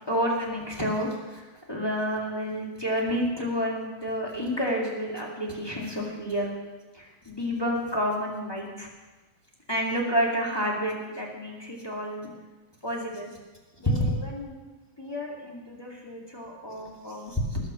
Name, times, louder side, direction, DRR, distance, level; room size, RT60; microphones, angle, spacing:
voice 1, 0.1-1.4 1.7-6.5 6.9-8.9 9.7-12.3 12.8-13.3 13.8-14.6 15.0-17.6, equal, 10° left, -3 dB, 1.6 m, -29 dB
19.0 x 6.4 x 6.2 m, 1.2 s
omnidirectional pair, 3.4 m